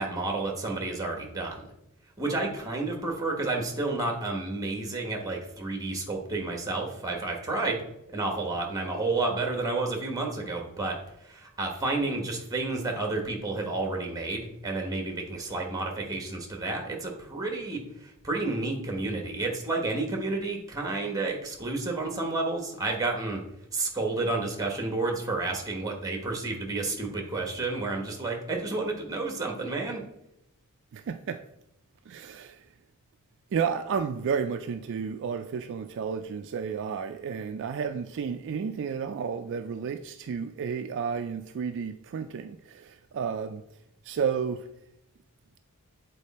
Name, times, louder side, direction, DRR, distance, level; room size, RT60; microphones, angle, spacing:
voice 1, 0.0-1.6 2.2-7.8 8.1-23.4 23.7-30.0, right 3 dB, 15° right, 1.3 m, -31 dB
voice 2, 30.9-31.4 32.1-32.6 33.5-43.6 44.0-44.7, right 6 dB, 55° right, 0.3 m, -32 dB
8.2 x 4.1 x 4.2 m
head